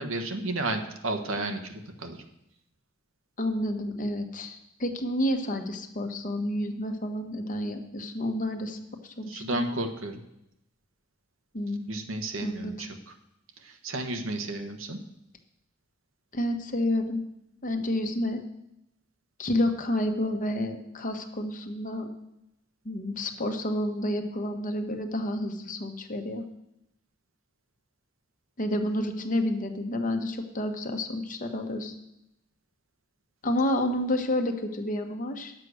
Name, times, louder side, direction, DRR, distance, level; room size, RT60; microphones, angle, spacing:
voice 1, 0.0-2.2 9.3-10.2 11.9-13.1 13.6-15.0, right 2 dB, 80° right, 6 dB, 1.3 m, -32 dB
voice 2, 3.4-8.8 9.0-9.6 11.5-11.9 12.4-12.7 16.3-17.2 17.6-18.4 19.4-22.1 22.8-26.4 28.6-31.9 33.4-35.5, left 1 dB, 40° left, 5 dB, 1.2 m, -29 dB
10.5 x 7.5 x 6.4 m, 0.83 s
head